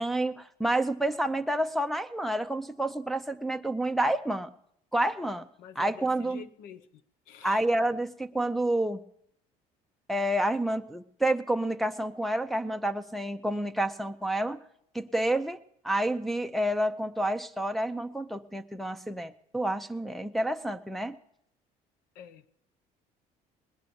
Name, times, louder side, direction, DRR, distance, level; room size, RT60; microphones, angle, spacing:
voice 1, 0.0-4.5 4.9-5.5 5.8-6.5 7.4-9.0 10.1-14.6 14.9-15.6 15.8-21.2, right 1 dB, ahead, 0.6 m, -29 dB
voice 2, 5.6-6.9 7.3-7.6 22.2-22.5, left 8 dB, 80° left, 0.8 m, -47 dB
19.0 x 10.0 x 7.0 m
cardioid pair, 125°, 15 cm